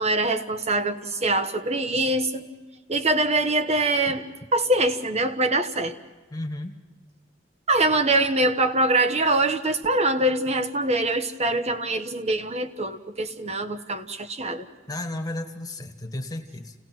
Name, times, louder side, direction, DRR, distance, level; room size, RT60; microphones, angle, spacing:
voice 1, 0.0-2.5 2.9-4.2 4.5-6.0 7.7-14.7, right 2 dB, 35° right, 8 dB, 1.2 m, -23 dB
voice 2, 6.3-6.8 14.9-16.7, left 1 dB, 20° left, 4 dB, 1.5 m, -33 dB
29.0 x 18.0 x 6.0 m, 1.2 s
head